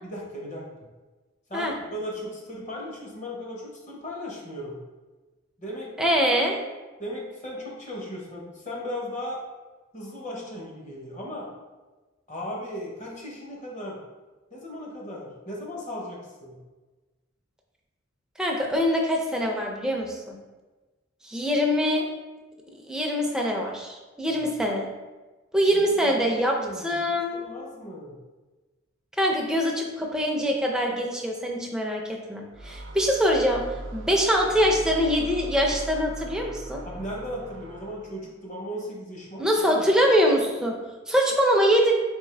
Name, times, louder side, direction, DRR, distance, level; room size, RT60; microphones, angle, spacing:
voice 1, 0.0-0.9 1.5-4.8 5.6-6.2 7.0-9.4 9.9-11.5 12.3-14.0 14.5-16.6 24.3-24.5 25.7-28.2 36.8-39.9, equal, 40° left, -2 dB, 0.9 m, -37 dB
voice 2, 6.0-6.6 18.4-20.4 21.2-22.1 22.8-24.9 25.5-26.6 26.8-27.4 29.2-36.8 39.4-40.8 41.1-41.9, equal, 5° right, 0 dB, 0.4 m, -24 dB
sound 1, 32.5-38.2, right 2 dB, 70° right, 0.5 m, -39 dB
3.7 x 3.6 x 3.3 m, 1.2 s
head